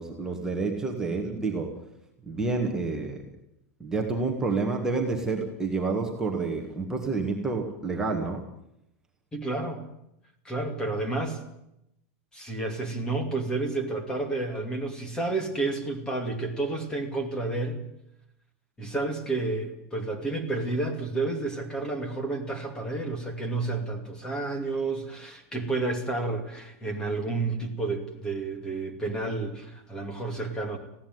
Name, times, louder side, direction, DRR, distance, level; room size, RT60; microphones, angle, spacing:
voice 1, 0.0-1.7 2.3-3.2 3.8-8.4, right 3 dB, 5° right, 0 dB, 1.8 m, -29 dB
voice 2, 9.3-9.8 10.4-11.4 12.3-17.8 18.8-30.8, right 3 dB, 10° left, 6 dB, 2.5 m, -30 dB
20.0 x 16.0 x 9.5 m, 0.81 s
supercardioid pair, 180°, 9 cm